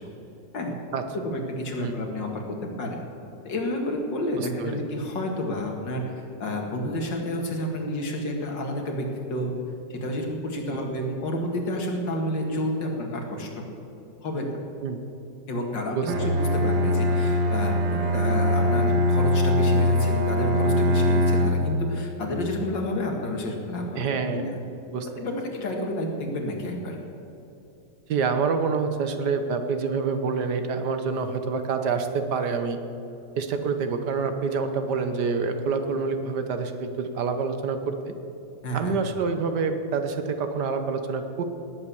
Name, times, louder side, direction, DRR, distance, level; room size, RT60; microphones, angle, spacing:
voice 1, 1.1-3.0 3.4-9.5 9.9-13.7 14.2-14.5 15.5-24.6 25.2-27.0 38.6-39.1, left 1 dB, 75° left, 1 dB, 2.6 m, -30 dB
voice 2, 4.4-4.8 10.7-10.8 14.8-15.0 15.9-16.3 24.0-24.4 24.9-25.1 28.1-32.8 33.4-38.1 38.7-41.4, right 5 dB, 65° right, 7 dB, 1.5 m, -27 dB
Bowed string instrument, 16.1-21.7, left 1 dB, 85° right, 2.1 m, -22 dB
18.5 x 8.0 x 7.0 m, 3.0 s
omnidirectional pair, 2.0 m